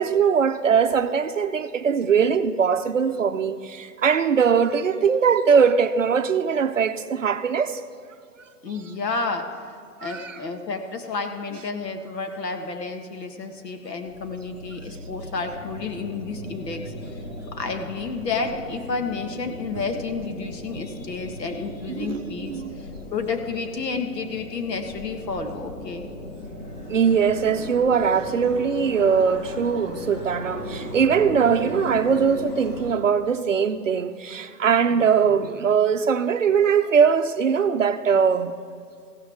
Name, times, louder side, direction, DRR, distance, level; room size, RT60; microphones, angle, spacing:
voice 1, 0.0-7.8 10.0-10.4 21.9-22.8 26.9-38.5, right 6 dB, 55° right, 0.5 m, -21 dB
voice 2, 8.6-17.1 17.5-26.1, left 4 dB, 80° left, 1.7 m, -31 dB
sound 1, 14.0-32.9, left 1 dB, 65° left, 2.6 m, -37 dB
15.5 x 12.5 x 3.5 m
hypercardioid pair, 175°, 48 cm